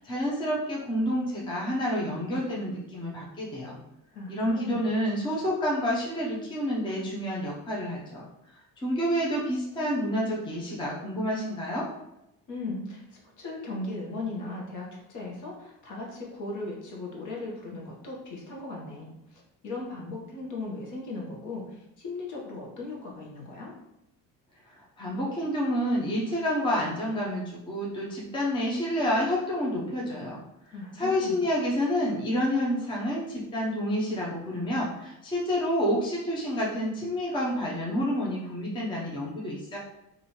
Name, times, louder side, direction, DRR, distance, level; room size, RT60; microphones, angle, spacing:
voice 1, 0.0-3.8 4.3-8.5 8.8-11.9 24.7-30.4 30.9-39.8, equal, 15° left, -5 dB, 0.7 m, -29 dB
voice 2, 4.1-4.8 12.5-23.7 30.7-31.4, left 2 dB, 55° left, -2 dB, 1.2 m, -37 dB
3.0 x 2.7 x 4.2 m, 0.88 s
cardioid pair, 150°, 36 cm